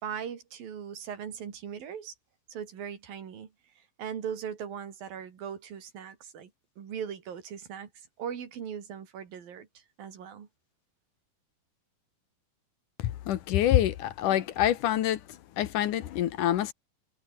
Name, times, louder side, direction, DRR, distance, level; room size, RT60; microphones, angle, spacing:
voice 1, 0.0-2.1 2.5-3.5 4.0-6.5 6.8-7.9 8.2-10.5, right 8 dB, 80° right, 4.7 m, -39 dB
voice 2, 13.3-15.2 15.6-16.7, left 12 dB, 70° left, 2.6 m, -26 dB
omnidirectional pair, 4.0 m